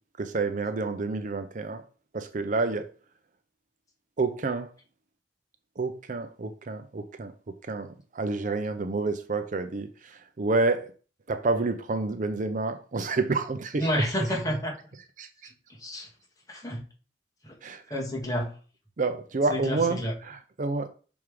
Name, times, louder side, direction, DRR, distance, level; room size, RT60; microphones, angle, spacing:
voice 1, 0.2-1.8 2.1-2.9 4.2-4.7 5.8-7.3 7.7-10.9 11.3-13.9 15.2-15.5 17.6-17.8 19.0-20.9, right 3 dB, 45° right, 0.5 m, -29 dB
voice 2, 13.8-14.7 15.7-16.1 16.5-16.8 17.4-17.6 17.9-18.5 19.5-20.1, equal, 20° left, 1.7 m, -29 dB
6.0 x 3.6 x 4.7 m
head